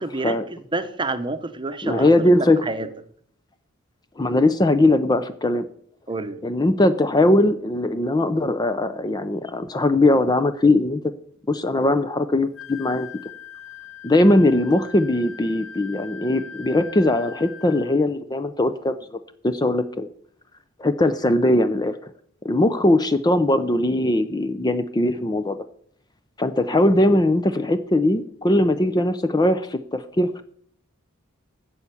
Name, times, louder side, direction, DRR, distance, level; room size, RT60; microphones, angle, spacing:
voice 1, 0.0-2.9 6.1-6.4, right 2 dB, 25° right, 10 dB, 0.9 m, -29 dB
voice 2, 1.8-2.6 4.2-5.7 6.4-11.0 11.5-13.1 14.0-19.0 19.4-20.1 20.8-22.0 22.4-25.6 26.4-30.4, left 1 dB, 20° left, 11 dB, 0.5 m, -20 dB
Wind instrument woodwind instrument, 12.5-18.0, left 6 dB, 65° left, 1.2 m, -41 dB
10.0 x 7.0 x 8.4 m, 0.63 s
head